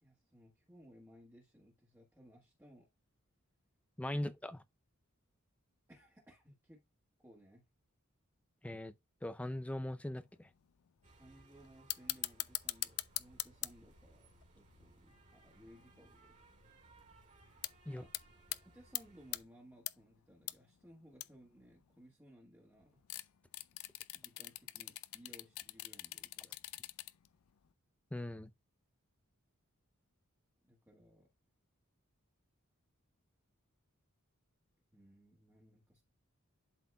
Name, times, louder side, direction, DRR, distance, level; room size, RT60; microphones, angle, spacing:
voice 1, 0.0-2.9 4.1-4.3 5.9-6.8 7.2-7.7 11.2-14.3 14.5-16.4 17.8-18.1 18.5-23.0 24.1-26.6 26.8-26.9 30.6-31.3 34.9-36.0, equal, 10° right, 1.5 m, -61 dB
voice 2, 4.0-4.6 8.6-8.9 9.2-10.5 17.9-18.0 28.1-28.5, left 1 dB, 5° left, 0.4 m, -40 dB
sound 1, 10.4-10.5 10.9-11.3 11.6-16.1 16.6-16.7 16.9-17.3 17.6-17.7 18.1-18.6 18.9-19.4 19.9-20.5 20.8-20.9 21.1-21.5 23.0-27.3 27.6-27.7, left 17 dB, 75° left, 0.4 m, -42 dB
sound 2, 11.0-19.4, right 2 dB, 35° right, 2.2 m, -64 dB
11.5 x 4.1 x 2.2 m
head